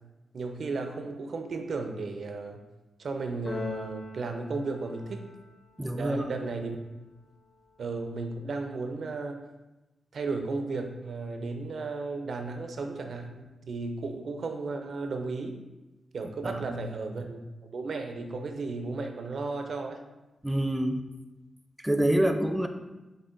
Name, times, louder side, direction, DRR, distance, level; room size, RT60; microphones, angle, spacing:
voice 1, 0.3-2.6 3.0-5.2 5.9-6.8 7.8-9.4 10.1-15.6 16.1-17.4 17.7-20.0, right 3 dB, 70° right, 5 dB, 0.4 m, -34 dB
Keyboard (musical), 3.4-5.6, left 4 dB, 45° left, 0.7 m, -41 dB
voice 2, 5.8-6.3 16.4-16.8 20.4-21.0 21.8-22.7, right 1 dB, 10° right, 6 dB, 0.4 m, -26 dB
6.4 x 2.2 x 2.5 m, 1.1 s
cardioid pair, 50°, 0 cm